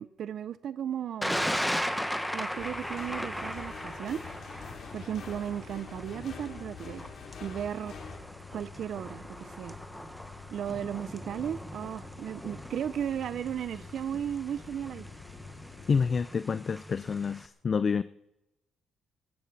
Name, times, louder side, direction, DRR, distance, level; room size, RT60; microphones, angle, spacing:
voice 1, 0.0-1.6 2.3-4.2 4.9-7.1 7.4-8.0 8.5-9.8 10.5-15.1, right 9 dB, 65° right, 0.5 m, -35 dB
Thunder, 1.2-17.5, equal, ahead, 1.3 m, -38 dB
sound 1, 2.5-8.2, left 5 dB, 60° left, 3.2 m, -46 dB
sound 2, 2.6-16.2, left 6 dB, 80° left, 3.0 m, -51 dB
voice 2, 15.9-18.0, left 5 dB, 40° left, 0.4 m, -28 dB
19.5 x 15.5 x 4.1 m
cardioid pair, 90°, 0 cm